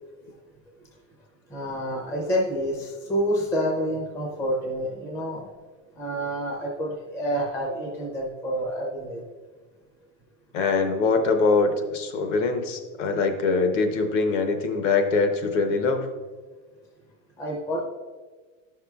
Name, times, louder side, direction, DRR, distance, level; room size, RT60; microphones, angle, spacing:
voice 1, 1.5-5.4 6.0-9.2 17.4-17.8, equal, 10° left, -2 dB, 0.4 m, -28 dB
voice 2, 10.5-16.1, left 4 dB, 65° left, 6 dB, 0.9 m, -23 dB
10.5 x 5.7 x 2.3 m, 1.4 s
supercardioid pair, 170°, 39 cm